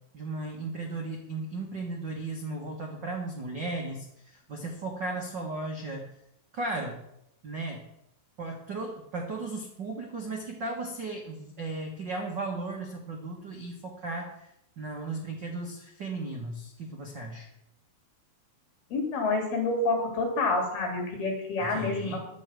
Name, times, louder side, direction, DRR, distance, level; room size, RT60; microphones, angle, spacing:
voice 1, 0.1-6.1 6.5-7.0 7.4-7.8 8.4-14.5 14.8-17.5 21.6-22.3, right 2 dB, 65° right, 0 dB, 1.1 m, -36 dB
voice 2, 18.9-22.2, left 3 dB, 65° left, 1 dB, 5.3 m, -28 dB
11.5 x 8.4 x 7.6 m, 0.79 s
omnidirectional pair, 4.8 m